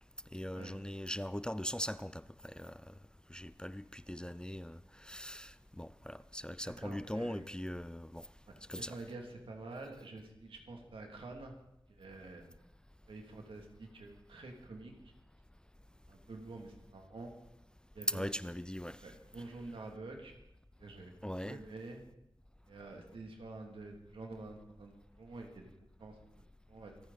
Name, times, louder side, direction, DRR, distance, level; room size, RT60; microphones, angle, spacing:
voice 1, 0.3-2.9 3.3-8.3 8.7-9.0 18.1-19.0 21.2-21.6, equal, 10° left, 0.5 m, -40 dB
voice 2, 6.6-7.4 8.5-11.5 11.9-12.5 13.1-14.9 16.1-17.3 17.9-18.3 19.0-20.3 20.8-21.1 21.4-22.0 22.7-25.7 26.0-26.2 26.7-26.9, right 3 dB, 85° right, 2.6 m, -48 dB
25.0 x 9.4 x 4.1 m
cardioid pair, 40°, 9 cm